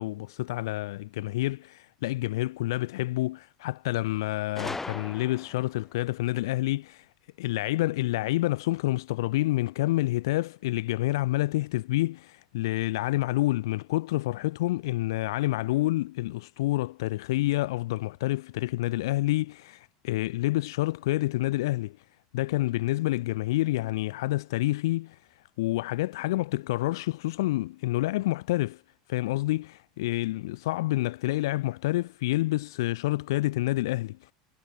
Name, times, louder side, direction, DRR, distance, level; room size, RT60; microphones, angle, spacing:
voice 1, 0.0-7.0 7.4-22.0 22.3-25.2 25.6-28.8 29.1-34.2, left 17 dB, 80° left, 0.7 m, -28 dB
Gunshot gunfire, 4.6-5.8, left 3 dB, 10° left, 0.9 m, -37 dB
hypercardioid pair, 100°, 2 cm